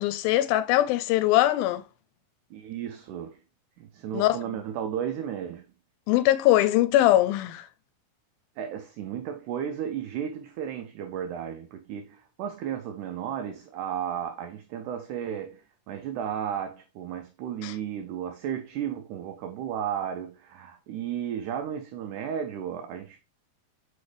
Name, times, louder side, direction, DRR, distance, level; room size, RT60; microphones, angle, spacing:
voice 1, 0.0-1.8 4.1-4.3 6.1-7.7 17.6-17.7, left 14 dB, 85° left, 2.3 m, -22 dB
voice 2, 2.5-3.4 3.8-5.7 8.6-23.2, right 9 dB, 85° right, 1.7 m, -34 dB
6.3 x 5.2 x 3.3 m
omnidirectional pair, 4.3 m